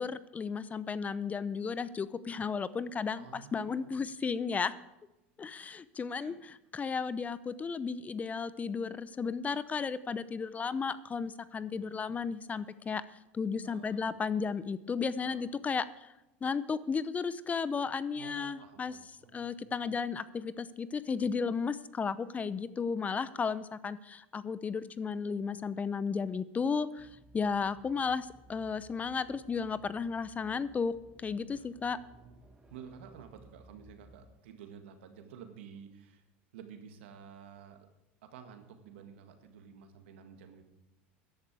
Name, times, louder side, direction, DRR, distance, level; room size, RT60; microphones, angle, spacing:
voice 1, 0.0-4.7 5.4-13.0 13.3-16.1 16.4-18.9 19.3-27.1 27.3-30.9 31.2-32.0, left 5 dB, 25° left, 16 dB, 0.6 m, -34 dB
voice 2, 3.2-3.9 6.1-6.4 13.6-14.1 15.2-15.5 18.1-19.9 22.3-22.4 27.4-27.5 31.5-31.7 32.0-32.4 32.7-36.2 36.5-37.8 38.2-40.6, right 7 dB, 75° right, 6 dB, 1.8 m, -52 dB
sound 1, 27.0-34.2, right 2 dB, 15° right, 1.8 m, -59 dB
14.0 x 11.0 x 4.7 m, 0.91 s
hypercardioid pair, 95°, 6 cm